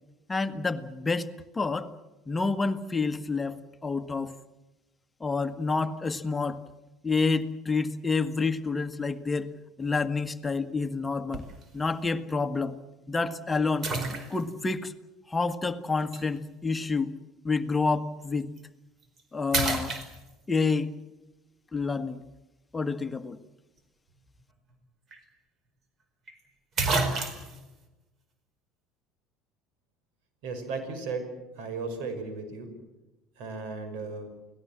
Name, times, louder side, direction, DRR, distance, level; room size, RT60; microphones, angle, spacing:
voice 1, 0.3-1.3 1.5-1.9 2.3-4.3 5.2-6.6 7.0-9.5 9.8-11.5 11.7-12.8 13.1-13.9 14.3-14.9 15.3-17.1 17.4-18.5 19.3-19.9 20.5-20.9 21.7-22.2 22.7-23.4, left 4 dB, 20° left, 10 dB, 1.6 m, -28 dB
sound 1, 11.3-11.6 12.3-12.4 13.8-14.7 16.1-16.2 18.4-18.6 19.0-19.2 19.5-20.6 24.7-24.8 25.1-25.2 26.3-26.4 26.8-27.6, right 3 dB, 40° right, 4.9 m, -29 dB
voice 2, 30.4-31.3 31.6-32.7 33.4-34.3, right 4 dB, 65° right, 8 dB, 5.9 m, -35 dB
29.5 x 19.0 x 7.5 m, 1.1 s
hypercardioid pair, 70°, 0 cm